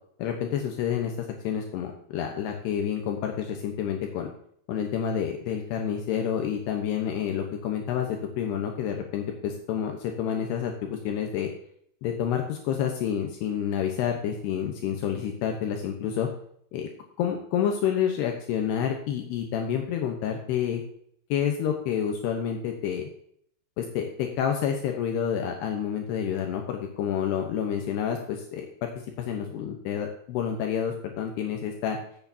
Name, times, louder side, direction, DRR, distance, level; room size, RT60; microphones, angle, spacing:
voice 1, 0.2-1.1 1.4-4.3 4.7-11.5 12.0-16.3 16.7-16.9 17.2-20.8 21.3-23.1 23.8-28.9 29.2-32.0, left 8 dB, 75° left, 3 dB, 3.0 m, -29 dB
14.0 x 8.3 x 2.8 m, 0.66 s
omnidirectional pair, 5.0 m